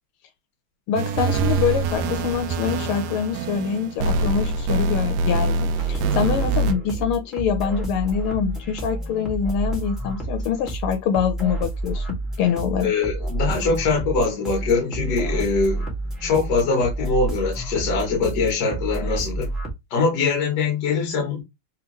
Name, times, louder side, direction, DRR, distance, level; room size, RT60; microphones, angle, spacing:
voice 1, 0.9-12.1 12.4-12.9, left 7 dB, 85° left, 1.5 m, -25 dB
sound 1, 1.0-6.7, right 3 dB, 85° right, 0.9 m, -24 dB
sound 2, 5.7-19.7, right 2 dB, ahead, 1.4 m, -29 dB
voice 2, 12.8-15.9 16.2-19.5 19.9-21.4, left 4 dB, 55° left, 1.6 m, -22 dB
3.6 x 3.4 x 3.0 m
omnidirectional pair, 2.3 m